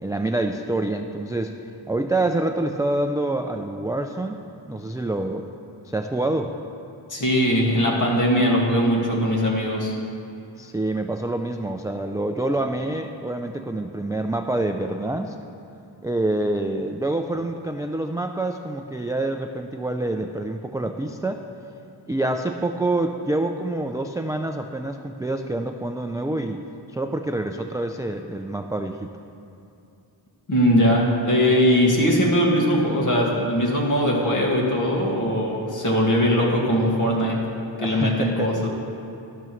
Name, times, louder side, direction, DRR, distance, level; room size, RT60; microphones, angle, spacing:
voice 1, 0.0-5.5 5.8-6.5 10.6-15.4 16.0-21.4 22.1-26.6 26.9-29.1 37.8-38.7, right 2 dB, 10° right, 5 dB, 0.3 m, -27 dB
voice 2, 7.1-9.9 30.5-37.4 37.8-38.7, equal, 40° left, -2 dB, 2.1 m, -20 dB
12.0 x 12.0 x 3.1 m, 2.7 s
wide cardioid pair, 90°, 46 cm